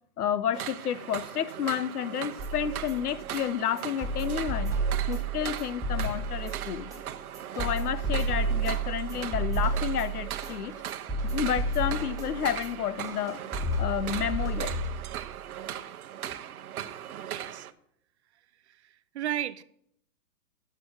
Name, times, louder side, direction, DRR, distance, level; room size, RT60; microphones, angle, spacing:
voice 1, 0.2-4.8 5.1-6.9 7.6-10.8 11.2-13.4 13.8-14.8, left 9 dB, 75° left, 0.8 m, -30 dB
sound 1, 0.5-17.7, right 10 dB, 70° right, 0.9 m, -39 dB
sound 2, 2.4-15.4, right 3 dB, 5° right, 2.7 m, -32 dB
voice 2, 17.1-17.7 19.1-19.6, right 11 dB, 45° right, 0.5 m, -33 dB
10.5 x 6.9 x 6.2 m
hypercardioid pair, 140°, 46 cm